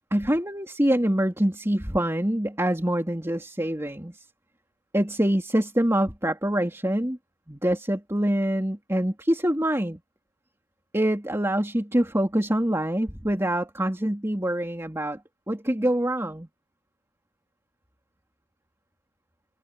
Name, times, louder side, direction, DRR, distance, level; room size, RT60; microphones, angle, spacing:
voice 1, 0.0-4.2 4.9-7.2 7.5-10.0 10.9-15.2 15.5-16.5, right 1 dB, 15° right, 3.2 m, -25 dB
head